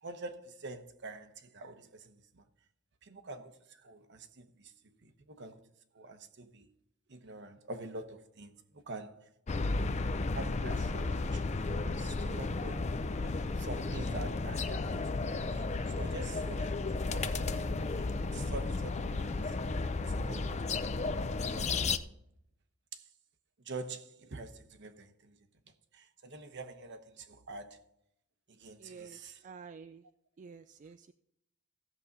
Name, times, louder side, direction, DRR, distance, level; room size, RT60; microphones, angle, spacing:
voice 1, 0.0-2.4 3.0-4.7 5.0-5.6 5.9-6.7 7.1-9.8 10.3-12.8 13.6-15.6 15.9-17.4 17.8-19.4 20.1-20.6 21.4-21.7 22.9-23.0 23.7-25.4 25.9-27.8 28.5-29.4, right 2 dB, 60° right, 1.0 m, -46 dB
sound 1, 9.5-22.0, left 3 dB, 35° left, 0.5 m, -33 dB
voice 2, 28.8-29.2 29.4-30.0 30.4-31.1, right 5 dB, 35° right, 0.3 m, -49 dB
15.5 x 7.1 x 4.0 m
head